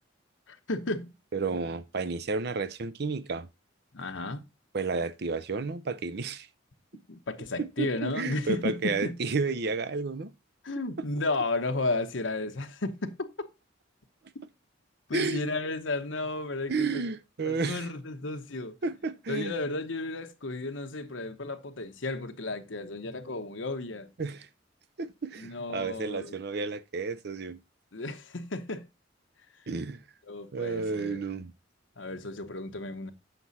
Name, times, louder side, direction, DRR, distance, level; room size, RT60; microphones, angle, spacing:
voice 1, 0.5-1.1 3.9-4.5 7.1-9.2 10.6-13.3 15.1-17.1 17.4-18.7 19.3-24.1 25.4-26.4 27.9-28.9 29.5-29.7 30.3-31.2 32.0-33.1, left 2 dB, 85° left, 1.0 m, -33 dB
voice 2, 1.3-3.5 4.7-6.5 7.6-10.3 15.1-15.4 16.7-17.9 18.8-19.5 24.2-24.5 25.0-27.6 29.7-30.0 30.5-31.5, right 4 dB, 60° right, 0.6 m, -31 dB
8.0 x 6.0 x 4.1 m
head